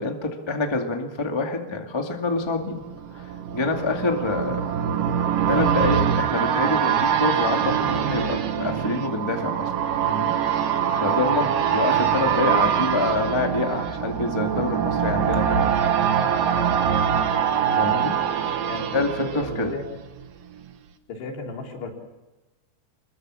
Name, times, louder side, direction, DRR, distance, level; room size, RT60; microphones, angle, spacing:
voice 1, 0.0-2.8 3.1-4.7 5.5-9.7 10.0-10.3 10.9-15.6 17.7-18.6 18.9-19.7, left 3 dB, 15° left, 2 dB, 0.8 m, -26 dB
sound 1, 2.5-20.3 20.6-20.7, right 8 dB, 65° right, 2.7 m, -24 dB
voice 2, 19.3-19.8 21.1-21.9, left 3 dB, 75° left, 0 dB, 5.7 m, -35 dB
26.0 x 22.0 x 6.4 m, 1.1 s
omnidirectional pair, 4.8 m